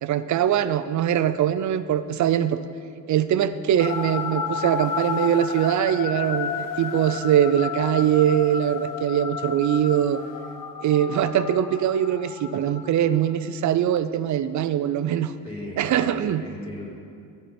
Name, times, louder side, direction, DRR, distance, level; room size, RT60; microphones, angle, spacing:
voice 1, 0.0-2.6 3.1-10.2 10.8-15.3 15.8-16.4, right 10 dB, 55° right, 13 dB, 0.5 m, -22 dB
sound 1, 3.8-13.2, left 7 dB, 65° left, 0.8 m, -32 dB
voice 2, 15.4-16.9, left 1 dB, 15° left, -6 dB, 2.7 m, -37 dB
10.5 x 9.3 x 4.3 m, 2.3 s
cardioid pair, 125°, 35 cm